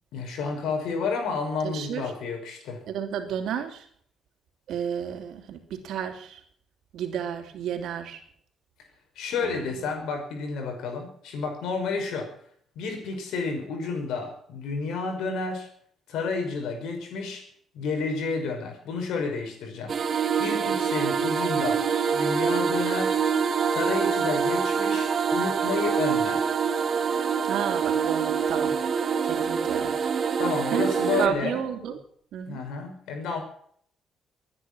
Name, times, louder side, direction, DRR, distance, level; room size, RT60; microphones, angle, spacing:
voice 1, 0.1-2.8 9.2-12.3 12.8-15.7 16.1-17.4 17.7-20.0 20.4-21.9 22.1-23.2 23.7-26.5 30.4-31.6 32.5-33.4, left 4 dB, 85° left, 4 dB, 5.7 m, -30 dB
voice 2, 1.6-2.1 2.9-3.9 4.7-6.4 6.9-8.2 9.4-9.8 27.4-28.8 29.2-30.1 30.7-30.9 31.2-32.0 32.3-32.6, right 8 dB, 80° right, 6 dB, 3.0 m, -32 dB
sound 1, 19.9-31.3, right 6 dB, 50° right, 1.6 m, -25 dB
23.5 x 10.0 x 6.2 m, 0.62 s
cardioid pair, 90°, 0 cm